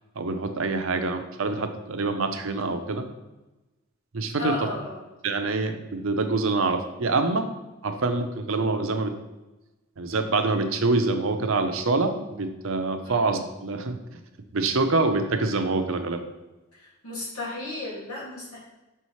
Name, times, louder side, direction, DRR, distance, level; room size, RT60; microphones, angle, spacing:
voice 1, 0.2-3.1 4.1-4.5 5.2-7.5 7.8-9.1 10.0-14.2 14.5-16.2, right 3 dB, 65° right, 7 dB, 0.6 m, -25 dB
voice 2, 4.4-5.0 13.0-13.2 16.7-18.6, left 2 dB, 90° left, -4 dB, 2.2 m, -34 dB
6.0 x 5.6 x 3.1 m, 1.0 s
head